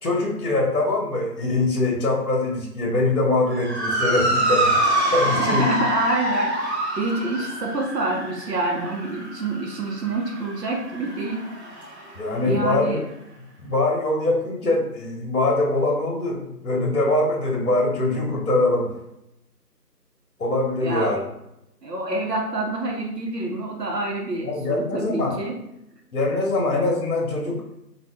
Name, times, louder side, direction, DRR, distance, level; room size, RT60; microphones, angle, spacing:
voice 1, 0.0-4.8 5.1-5.7 12.2-13.0 13.6-18.9 20.4-21.2 24.4-25.3 26.1-27.8, left 2 dB, 60° left, 0 dB, 1.0 m, -23 dB
Motor vehicle (road) / Siren, 3.5-12.1, right 1 dB, 45° right, 0.7 m, -26 dB
voice 2, 5.3-11.5 12.4-13.0 20.8-21.1 21.8-25.6, right 2 dB, 75° right, 0 dB, 0.9 m, -27 dB
2.7 x 2.5 x 3.3 m, 0.84 s
figure-of-eight pair, 165°, 49 cm